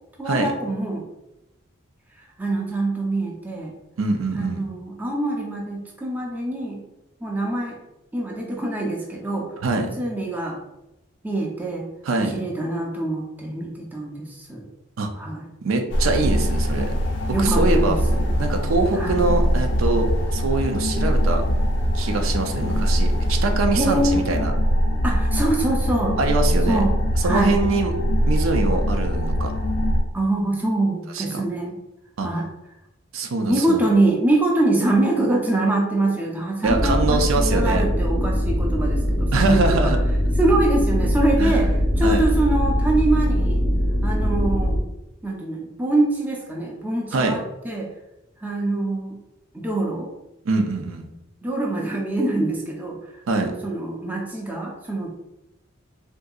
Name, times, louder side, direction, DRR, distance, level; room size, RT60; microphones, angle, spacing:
voice 1, 0.2-1.0 2.4-3.7 4.3-6.8 7.2-7.8 8.1-10.6 11.2-11.9 12.3-14.7 15.2-15.5 17.3-18.2 18.9-19.2 23.8-24.5 25.0-26.2 26.7-27.0 27.2-27.6 30.1-31.7 32.2-32.5 33.5-39.9 40.4-43.6 44.0-44.8 45.2-47.9 48.4-49.2 49.5-50.1 51.4-53.0 53.3-55.1, right 2 dB, 10° right, -2 dB, 0.4 m, -24 dB
voice 2, 4.0-4.6 9.6-9.9 12.0-12.4 15.0-15.1 15.6-16.9 17.4-18.0 18.4-21.4 21.9-24.5 26.2-26.8 27.2-27.9 28.3-29.6 31.1-31.4 32.2-32.3 33.1-33.9 36.6-37.8 39.3-40.0 41.4-41.7 42.0-42.3 47.1-47.4 50.5-51.0 53.3-53.5, right 3 dB, 90° right, 4 dB, 0.5 m, -23 dB
sound 1, 15.9-30.0, equal, 60° left, 0.4 m, -22 dB
sound 2, 36.7-44.8, equal, 65° right, 0.8 m, -21 dB
3.7 x 2.6 x 2.3 m, 0.93 s
head